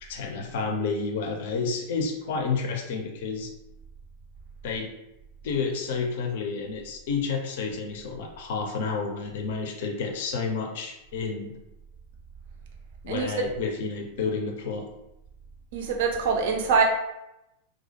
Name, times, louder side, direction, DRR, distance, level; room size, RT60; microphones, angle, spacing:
voice 1, 0.0-3.5 4.6-4.9 5.4-11.5 13.0-14.9, left 4 dB, 55° left, 3 dB, 0.4 m, -30 dB
voice 2, 13.1-13.5 15.7-16.8, right 5 dB, 55° right, 2 dB, 0.4 m, -24 dB
2.2 x 2.0 x 2.7 m, 0.88 s
figure-of-eight pair, 90°, 0 cm